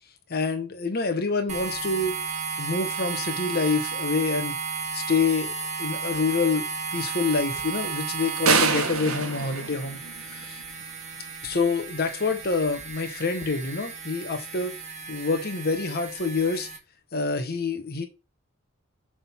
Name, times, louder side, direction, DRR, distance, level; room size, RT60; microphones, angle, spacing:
voice 1, 0.3-2.2 2.6-4.6 4.9-5.5 5.8-6.7 6.9-10.0 10.3-10.6 11.4-14.7 15.1-16.7 17.1-18.1, left 4 dB, 45° left, 1.1 m, -27 dB
sound 1, 1.5-16.8, right 5 dB, 35° right, 1.3 m, -34 dB
sound 2, 8.5-10.6, right 5 dB, 80° right, 1.3 m, -25 dB
6.5 x 3.7 x 5.7 m
head